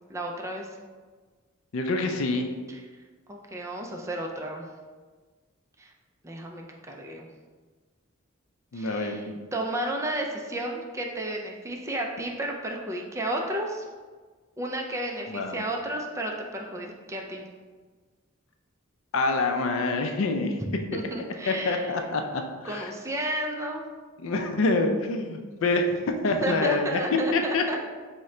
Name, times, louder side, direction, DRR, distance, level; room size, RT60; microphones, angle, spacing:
voice 1, 0.1-0.7 2.7-2.8 3.3-4.7 5.8-5.9 6.2-7.3 8.7-9.3 9.5-13.9 14.6-17.5 20.6-22.0 22.6-23.8 26.4-27.8, right 1 dB, 15° right, 1 dB, 0.3 m, -32 dB
voice 2, 1.7-2.5 8.7-9.4 15.3-15.6 19.1-20.6 21.5-22.9 24.2-25.8 26.2-27.0 27.3-27.8, left 3 dB, 70° left, 4 dB, 0.4 m, -26 dB
3.7 x 2.1 x 4.2 m, 1.4 s
head